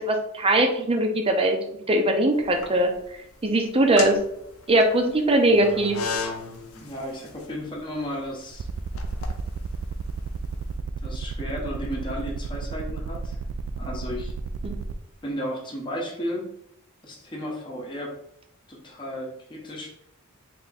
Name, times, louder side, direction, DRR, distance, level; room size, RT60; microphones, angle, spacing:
voice 1, 0.0-1.6 1.9-2.9 3.4-4.2 4.7-6.0 14.6-14.7, right 1 dB, 25° right, 4 dB, 0.6 m, -21 dB
sound 1, 2.4-3.1 3.7-10.6, left 4 dB, 80° left, 0.7 m, -35 dB
voice 2, 6.7-8.7 11.0-13.4 13.8-14.4 15.2-16.5 17.0-18.1 18.7-19.9, equal, 25° left, -3 dB, 1.0 m, -34 dB
sound 2, 8.5-14.9, right 7 dB, 65° right, 0.3 m, -33 dB
3.5 x 3.4 x 4.1 m, 0.74 s
head